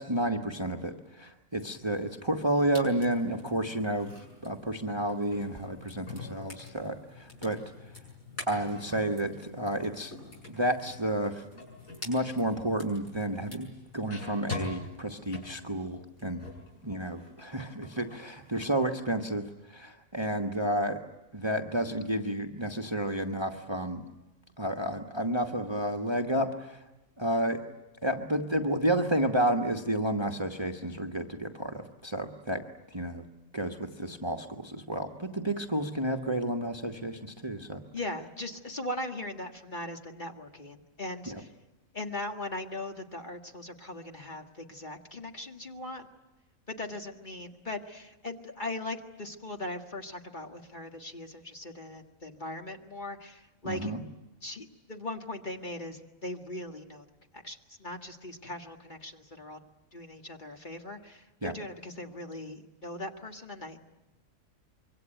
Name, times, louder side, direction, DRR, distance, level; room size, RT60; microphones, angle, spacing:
voice 1, 0.0-4.1 4.4-7.9 8.5-10.2 10.5-11.6 12.0-16.5 16.8-21.0 21.3-24.1 24.6-26.8 27.2-27.6 28.0-32.6 32.9-33.2 33.5-37.8 41.3-41.4 53.6-54.0 61.4-61.5, right 1 dB, 20° right, 4 dB, 1.3 m, -31 dB
sound 1, 1.6-16.7 17.1-18.7, left 2 dB, 70° left, 7.5 m, -45 dB
voice 2, 37.9-41.5 41.9-46.1 46.7-53.9 54.4-57.1 57.3-59.6 59.9-63.8, left 1 dB, 35° left, 3 dB, 1.9 m, -39 dB
25.5 x 23.5 x 9.1 m, 1.0 s
omnidirectional pair, 1.5 m